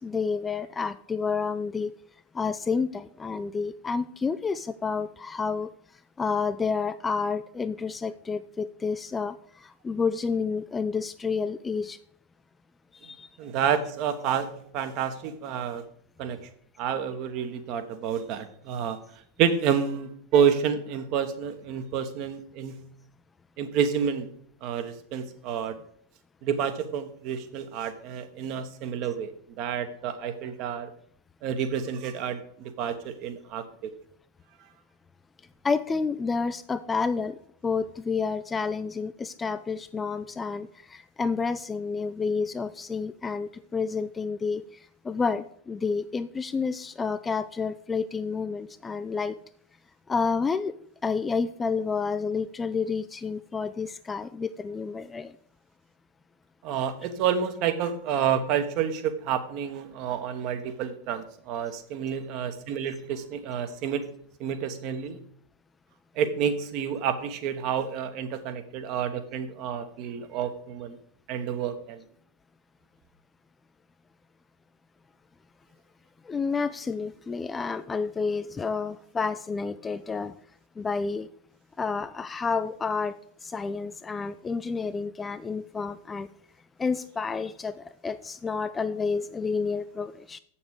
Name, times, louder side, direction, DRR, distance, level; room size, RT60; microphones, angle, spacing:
voice 1, 0.0-1.9 2.3-5.7 6.2-12.0 13.0-13.3 35.6-37.4 37.6-44.6 45.0-49.4 50.1-50.7 51.0-55.3 76.2-80.3 80.8-81.3 81.8-83.1 83.4-86.3 86.8-90.4, left 5 dB, 15° left, 0.4 m, -29 dB
voice 2, 13.4-15.8 16.2-16.4 16.8-19.0 19.4-22.8 23.6-24.3 24.6-25.8 26.4-29.3 29.6-30.9 31.4-33.9 56.6-64.1 64.4-65.2 66.1-71.0 71.3-72.0, right 8 dB, 40° right, 1.1 m, -29 dB
8.0 x 7.1 x 5.0 m
figure-of-eight pair, 90°, 0 cm